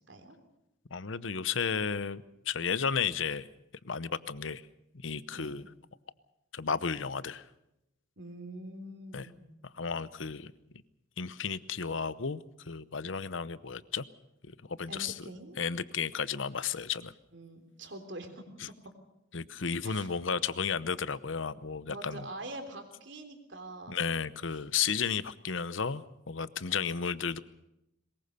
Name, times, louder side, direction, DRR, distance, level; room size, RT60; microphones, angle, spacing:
voice 1, 0.9-3.5 3.8-4.6 5.0-5.7 6.5-7.4 9.1-9.3 9.8-10.5 11.2-12.4 12.7-14.1 14.7-15.2 15.6-17.1 19.3-22.3 23.9-27.4, left 6 dB, 75° left, 16 dB, 0.8 m, -33 dB
voice 2, 8.2-9.4 14.9-15.6 17.3-18.8 19.8-20.1 21.9-23.9 26.7-27.1, right 1 dB, 65° right, 6 dB, 3.4 m, -45 dB
22.5 x 20.5 x 6.8 m, 0.87 s
head